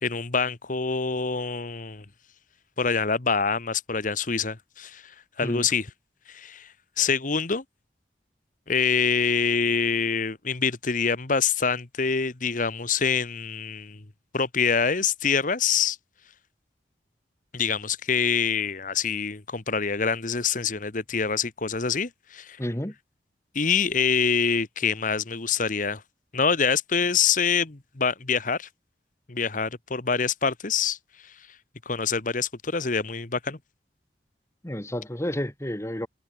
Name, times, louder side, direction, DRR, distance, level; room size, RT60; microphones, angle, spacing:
voice 1, 0.0-2.0 2.8-5.9 6.3-7.6 8.7-14.0 14.3-16.0 17.5-22.6 23.5-26.0 26.3-28.7 29.3-31.0 31.2-31.5 31.8-33.6, left 6 dB, 50° left, 1.3 m, -25 dB
voice 2, 22.6-22.9 34.6-36.1, equal, 15° left, 1.8 m, -30 dB
head